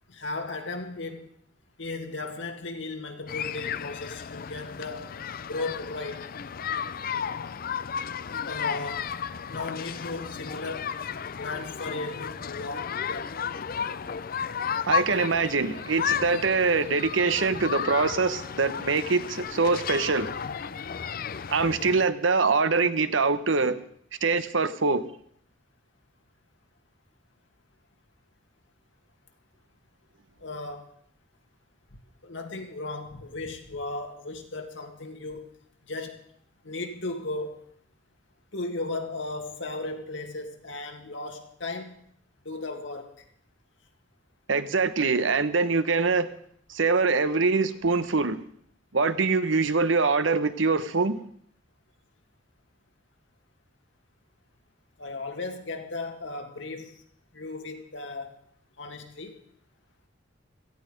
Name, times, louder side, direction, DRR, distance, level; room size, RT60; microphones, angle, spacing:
voice 1, 0.1-1.3 1.8-5.1 5.5-6.3 8.5-9.1 9.5-10.9 11.3-13.3 30.4-30.9 32.2-35.5 35.9-36.2 36.6-37.6 38.5-41.9 42.4-43.1 55.0-56.9 57.3-58.4 58.8-59.4, left 2 dB, 70° left, 4 dB, 2.3 m, -36 dB
sound 1, 3.3-22.1, left 7 dB, 50° left, 0.5 m, -33 dB
voice 2, 14.9-20.3 21.5-23.8 24.2-25.0 44.5-46.3 46.7-48.4 48.9-51.2, right 4 dB, 80° right, 12 dB, 1.0 m, -24 dB
17.5 x 14.5 x 5.3 m, 0.64 s
head